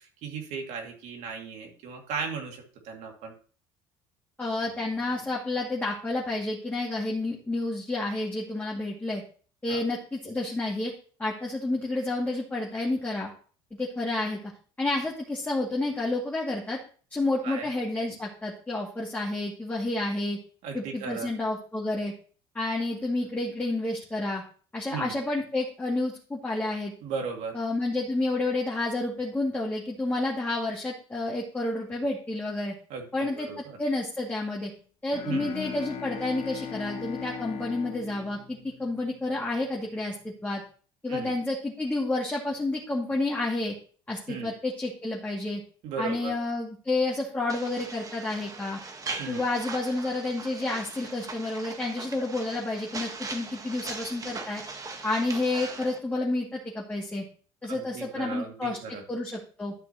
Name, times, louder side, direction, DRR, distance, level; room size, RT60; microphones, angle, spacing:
voice 1, 0.0-3.3 9.7-9.8 17.4-17.7 20.6-21.3 24.9-25.1 27.0-27.6 32.9-33.8 35.2-35.5 41.1-41.3 44.3-44.5 45.8-46.3 49.2-49.4 57.7-59.0, right 5 dB, 65° right, 2 dB, 2.3 m, -36 dB
voice 2, 4.4-9.2 9.6-10.9 11.2-13.3 13.8-14.4 14.8-16.8 17.1-20.4 20.7-22.1 22.5-24.4 24.7-26.9 27.5-32.7 33.1-34.7 35.0-40.1 40.4-40.6 41.0-43.7 44.1-45.6 46.0-48.8 49.3-54.6 55.0-57.2 57.6-59.7, left 2 dB, 10° left, -4 dB, 2.3 m, -30 dB
Bowed string instrument, 35.1-39.4, left 8 dB, 50° left, 1.3 m, -39 dB
sound 1, 47.5-56.0, right 4 dB, 30° right, 1.3 m, -40 dB
12.5 x 5.9 x 2.9 m, 0.41 s
supercardioid pair, 95°, 12 cm